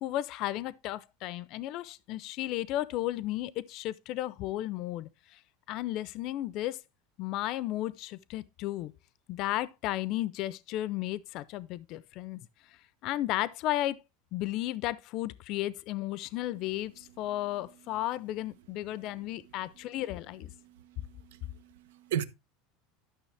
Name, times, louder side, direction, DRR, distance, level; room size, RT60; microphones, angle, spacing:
voice 1, 0.0-5.1 5.7-6.8 7.2-8.9 9.3-12.4 13.0-14.0 14.3-20.5, left 15 dB, 40° left, 0.5 m, -34 dB
voice 2, 20.6-22.2, right 10 dB, 85° right, 0.9 m, -37 dB
12.0 x 6.3 x 3.2 m
supercardioid pair, 165°, 0 cm